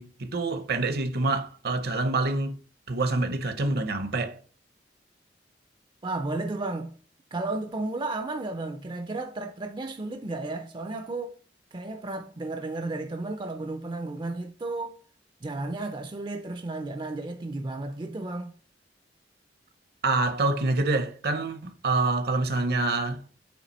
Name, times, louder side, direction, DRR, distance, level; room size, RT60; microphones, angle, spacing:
voice 1, 0.0-2.6 2.9-4.4 20.0-23.2, right 3 dB, 60° right, 0.8 m, -26 dB
voice 2, 6.0-6.9 7.3-11.3 11.7-14.9 15.4-18.5, right 2 dB, 25° right, 0.5 m, -33 dB
7.3 x 3.2 x 4.1 m
head